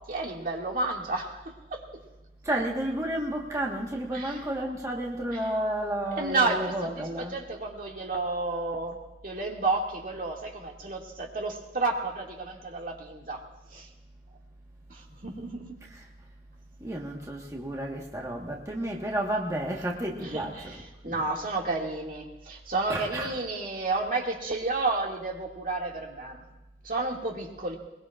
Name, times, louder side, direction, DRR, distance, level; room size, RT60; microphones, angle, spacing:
voice 1, 0.1-1.8 4.1-4.3 6.2-13.4 13.7-13.9 14.9-15.7 20.2-20.7 21.0-26.4 26.8-27.8, right 3 dB, 50° right, -1 dB, 2.2 m, -31 dB
voice 2, 2.4-7.3 15.8-16.1 16.8-21.2 22.9-23.3, right 1 dB, 20° right, -2 dB, 1.4 m, -32 dB
21.5 x 21.5 x 2.5 m, 1.0 s
head